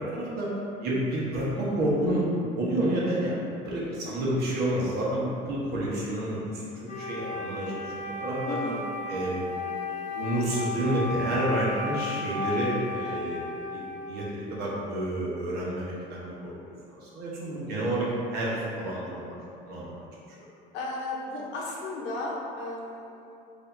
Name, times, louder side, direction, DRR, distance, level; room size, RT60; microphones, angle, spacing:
voice 1, 0.1-0.5 0.8-7.9 8.2-8.6 9.1-9.4 10.1-13.8 14.1-16.5 16.9-19.4 19.6-20.0, right 1 dB, 65° right, -6 dB, 1.1 m, -29 dB
Wind instrument woodwind instrument, 6.9-14.6, left 3 dB, 40° left, 0.5 m, -34 dB
voice 2, 8.5-8.8 13.0-13.2 20.7-23.3, left 2 dB, 85° left, -3 dB, 0.8 m, -35 dB
4.8 x 2.7 x 2.6 m, 2.7 s
cardioid pair, 125°, 18 cm